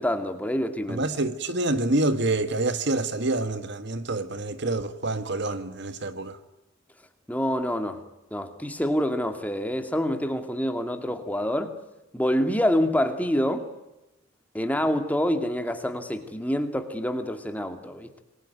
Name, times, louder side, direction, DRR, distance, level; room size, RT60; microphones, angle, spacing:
voice 1, 0.0-1.1 7.3-8.0 8.3-11.8 12.1-13.7 14.5-18.2, equal, 5° left, 2.2 m, -26 dB
voice 2, 0.9-6.4, right 2 dB, 55° right, 1.5 m, -27 dB
28.0 x 21.5 x 9.3 m
head